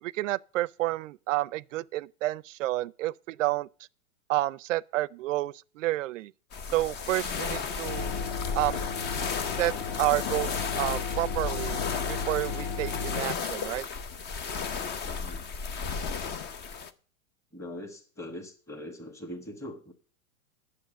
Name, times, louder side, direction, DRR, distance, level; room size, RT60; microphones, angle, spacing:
voice 1, 0.0-3.7 4.3-6.3 6.7-8.1 8.6-8.9 9.6-9.7 10.0-11.8 12.1-13.8, right 17 dB, 65° right, 0.5 m, -30 dB
sound 1, 6.5-16.9, left 5 dB, 25° left, 0.7 m, -34 dB
sound 2, 7.8-13.2, left 5 dB, 60° left, 1.4 m, -34 dB
voice 2, 15.0-15.5 17.5-19.9, left 1 dB, 5° left, 1.4 m, -42 dB
9.4 x 7.2 x 6.3 m
hypercardioid pair, 120°, 42 cm